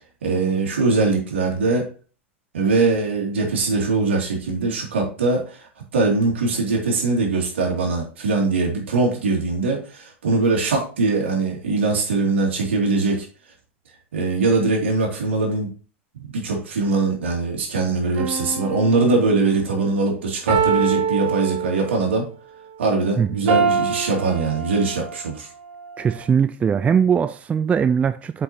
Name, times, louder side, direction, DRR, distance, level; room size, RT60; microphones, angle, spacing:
voice 1, 0.2-1.9 2.5-13.3 14.1-15.7 16.3-22.3 22.8-25.5, right 3 dB, 70° right, 2.8 m, -22 dB
sound 1, 18.1-19.5 20.5-22.1 23.5-25.2 25.8-26.0, right 5 dB, 50° right, 3.0 m, -24 dB
voice 2, 26.0-28.4, right 7 dB, 20° right, 0.4 m, -20 dB
8.0 x 5.5 x 3.0 m
figure-of-eight pair, 90°, 7 cm